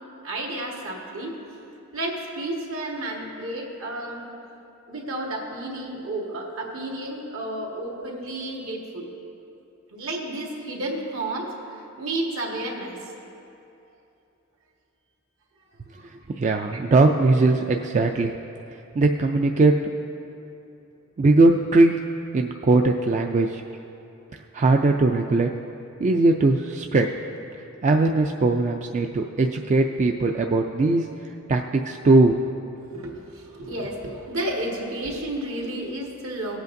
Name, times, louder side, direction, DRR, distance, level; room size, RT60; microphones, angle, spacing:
voice 1, 0.2-1.3 1.9-4.2 4.9-9.1 9.9-13.0 15.9-16.1 32.9-36.6, right 1 dB, 70° right, -1 dB, 1.6 m, -31 dB
voice 2, 16.4-18.3 19.0-19.7 21.2-21.9 22.3-23.6 24.5-25.5 26.0-27.1 27.8-31.1 31.5-32.6, right 2 dB, 35° right, 3 dB, 0.3 m, -20 dB
18.5 x 8.2 x 2.6 m, 2.8 s
head